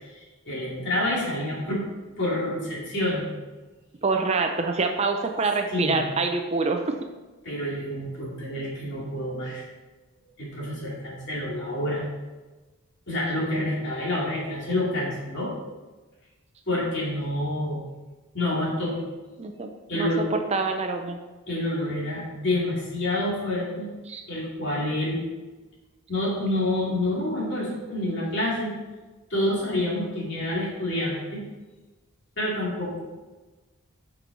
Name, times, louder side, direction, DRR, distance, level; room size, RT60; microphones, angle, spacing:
voice 1, 0.0-1.8 2.2-3.3 5.7-6.0 7.4-9.6 10.4-12.0 13.1-15.5 16.7-17.8 18.3-19.0 19.9-20.3 21.5-23.9 24.3-25.3 26.1-28.7 29.3-31.4 32.4-33.0, left 1 dB, 55° left, -5 dB, 2.6 m, -28 dB
voice 2, 4.0-7.0 19.4-21.2 24.1-24.2, right 3 dB, 30° right, 4 dB, 0.5 m, -26 dB
7.6 x 6.2 x 4.0 m, 1.2 s
head